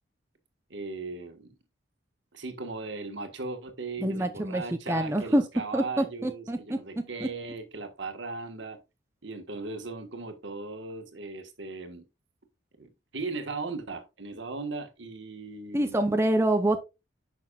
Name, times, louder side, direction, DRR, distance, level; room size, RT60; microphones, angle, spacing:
voice 1, 0.7-1.5 2.3-8.8 9.2-12.0 12.8-16.0, right 3 dB, 75° right, 1.5 m, -38 dB
voice 2, 4.0-5.4 5.7-6.8 7.2-7.3 15.7-16.8, right 1 dB, 15° right, 0.7 m, -26 dB
10.0 x 6.1 x 2.4 m
head